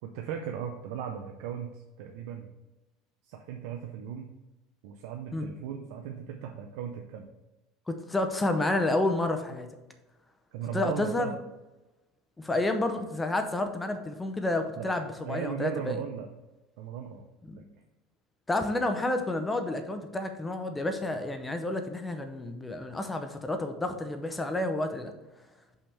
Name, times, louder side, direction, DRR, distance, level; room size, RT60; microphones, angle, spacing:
voice 1, 0.0-2.5 3.2-4.3 4.8-7.3 10.5-11.3 14.8-16.3 16.8-17.3 17.6-17.7, right 8 dB, 75° right, 3 dB, 0.5 m, -37 dB
voice 2, 7.9-9.7 10.7-11.3 12.4-16.0 17.5-17.6 18.5-25.1, left 2 dB, 10° left, 6 dB, 0.6 m, -30 dB
5.6 x 3.4 x 5.6 m, 1.0 s
supercardioid pair, 130°, 0 cm